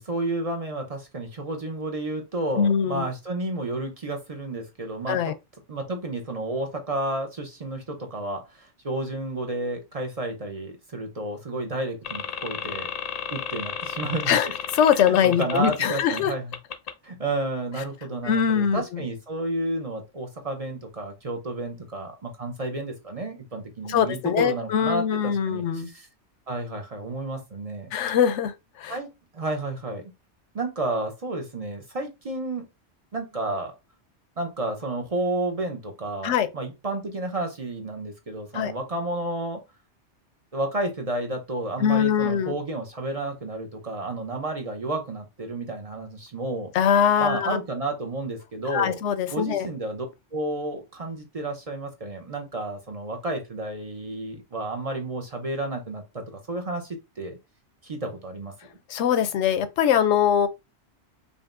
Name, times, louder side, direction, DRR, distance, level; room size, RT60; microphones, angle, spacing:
voice 1, 0.0-5.2 5.7-12.9 13.3-14.5 14.9-16.5 17.0-26.1 26.5-27.9 28.9-30.1 30.5-32.6 33.1-33.7 34.4-39.6 40.5-46.7 47.2-49.0 49.3-50.1 50.3-57.4 57.8-58.5, right 2 dB, 40° right, 0.6 m, -31 dB
voice 2, 2.6-3.1 5.1-5.3 14.3-14.5 14.7-16.3 18.2-19.0 23.9-25.9 27.9-28.5 28.8-29.0 36.2-36.5 38.5-38.7 41.8-42.5 46.7-47.6 48.7-49.7 58.9-60.5, left 8 dB, 80° left, 0.9 m, -22 dB
sound 1, 12.0-16.2 16.5-16.9, left 7 dB, 55° left, 0.4 m, -33 dB
5.2 x 2.6 x 2.5 m
omnidirectional pair, 1.2 m